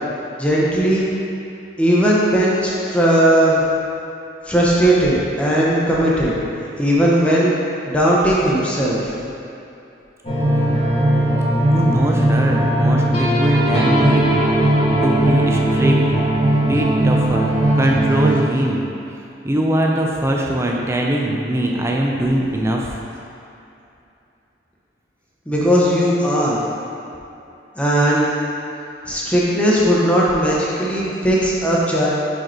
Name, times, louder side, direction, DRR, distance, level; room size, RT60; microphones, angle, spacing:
voice 1, 0.4-1.1 1.8-3.6 4.5-6.3 6.8-7.5 7.9-9.1 25.5-26.6 27.8-28.3 29.1-32.1, right 1 dB, 5° left, -6 dB, 0.8 m, -17 dB
sound 1, 10.2-18.3, right 1 dB, 30° left, 1.3 m, -17 dB
voice 2, 11.6-14.2 15.0-16.2 16.5-18.8 19.4-23.0, right 1 dB, 15° right, -1 dB, 0.5 m, -21 dB
4.9 x 4.7 x 4.5 m, 2.8 s
head